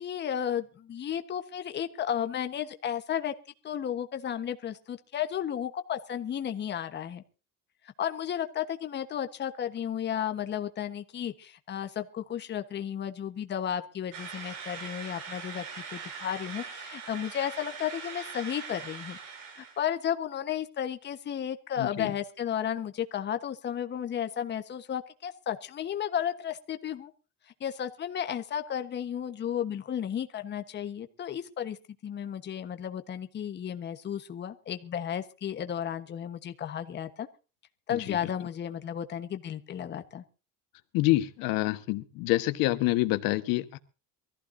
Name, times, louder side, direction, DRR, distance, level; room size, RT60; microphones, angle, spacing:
voice 1, 0.0-3.3 3.6-7.2 8.0-15.6 15.9-19.2 19.6-27.1 27.6-31.8 32.0-37.3 37.9-40.2, left 9 dB, 30° left, 8 dB, 1.3 m, -33 dB
sound 1, 14.1-19.8, right 6 dB, 70° right, 7.6 m, -41 dB
voice 2, 21.8-22.1 37.9-38.2 40.9-43.8, left 18 dB, 90° left, 10 dB, 1.4 m, -27 dB
23.5 x 15.0 x 2.7 m, 0.33 s
cardioid pair, 155°, 33 cm